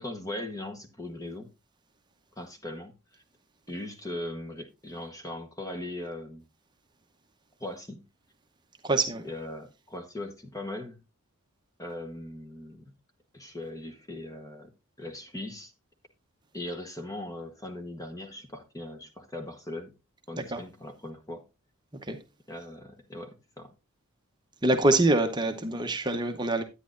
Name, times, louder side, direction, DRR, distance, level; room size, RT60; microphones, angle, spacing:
voice 1, 0.0-1.5 2.4-3.2 3.7-6.5 7.6-8.0 9.2-11.0 11.8-12.9 13.3-14.7 15.0-15.7 16.5-19.9 20.3-21.5 22.5-23.7, left 1 dB, 15° left, 1.0 m, -39 dB
voice 2, 8.8-9.2 20.5-20.6 22.1-22.2 24.6-26.6, right 2 dB, 20° right, 0.8 m, -25 dB
10.5 x 9.4 x 2.5 m
head